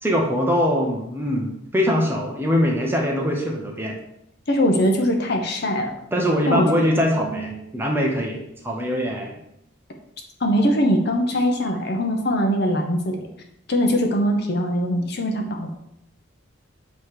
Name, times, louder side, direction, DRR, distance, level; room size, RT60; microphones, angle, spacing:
voice 1, 0.0-4.0 6.1-8.4 8.6-9.4, equal, 10° right, -1 dB, 0.8 m, -22 dB
voice 2, 4.5-5.9 6.5-6.7 10.4-13.3 13.7-15.7, equal, 55° left, 3 dB, 0.9 m, -21 dB
7.9 x 3.1 x 4.8 m, 0.80 s
head